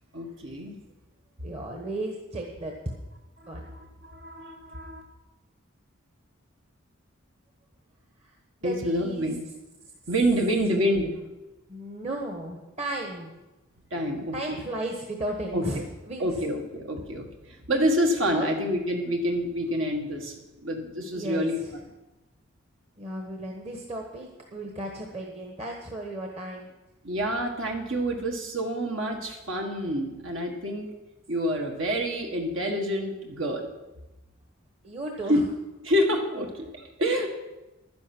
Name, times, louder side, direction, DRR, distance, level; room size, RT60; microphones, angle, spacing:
voice 1, 0.1-0.8 3.4-5.0 8.6-9.4 10.1-11.1 13.9-14.6 15.5-15.6 16.2-20.4 20.6-21.6 27.0-30.9 31.3-33.6 35.3-35.5 35.8-37.3, equal, 70° right, 2 dB, 1.7 m, -27 dB
voice 2, 1.4-2.7 3.5-3.7 8.6-9.3 11.7-13.3 14.3-15.8 16.1-16.3 18.3-18.5 21.1-21.5 23.0-26.7 34.8-35.4, right 1 dB, 30° right, 1 dB, 1.2 m, -34 dB
11.5 x 10.5 x 6.1 m, 1.1 s
head